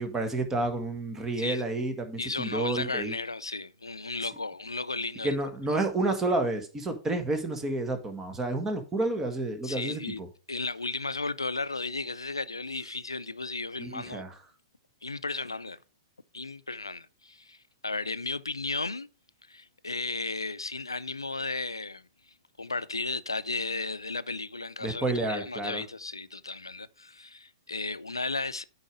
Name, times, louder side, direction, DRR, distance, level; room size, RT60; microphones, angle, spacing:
voice 1, 0.0-3.2 5.2-10.3 13.8-14.3 24.8-25.8, right 2 dB, 15° right, 1.6 m, -30 dB
voice 2, 2.2-5.4 9.6-10.2 10.5-14.2 15.0-15.8 16.3-19.1 19.5-28.6, left 3 dB, 85° left, 0.5 m, -34 dB
8.9 x 4.8 x 5.0 m
figure-of-eight pair, 110°, 2 cm